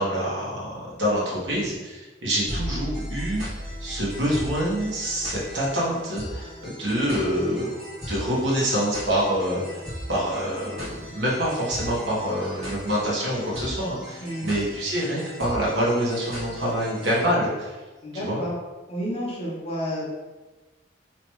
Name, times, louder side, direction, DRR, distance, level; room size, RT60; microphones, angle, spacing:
voice 1, 0.0-3.4 3.8-7.7 8.1-9.8 10.1-17.8 18.2-18.4, equal, 70° right, -6 dB, 1.3 m, -26 dB
sound 1, 2.5-17.2, equal, 35° right, 1.3 m, -37 dB
voice 2, 14.2-14.6 18.0-18.6 18.9-20.1, equal, 35° left, -4 dB, 0.9 m, -30 dB
3.3 x 2.9 x 3.1 m, 1.2 s
head